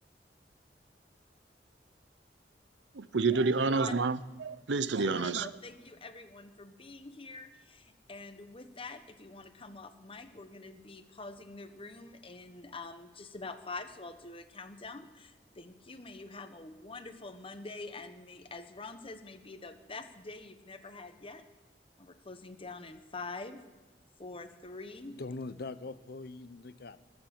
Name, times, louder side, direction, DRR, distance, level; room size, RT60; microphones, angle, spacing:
voice 1, 2.9-5.5, right 4 dB, 85° right, 0.7 m, -29 dB
voice 2, 5.0-21.4 22.0-23.6 24.2-25.2, left 3 dB, 30° left, 1.1 m, -46 dB
voice 3, 25.1-27.0, left 3 dB, 60° left, 0.7 m, -42 dB
19.5 x 7.4 x 7.7 m
head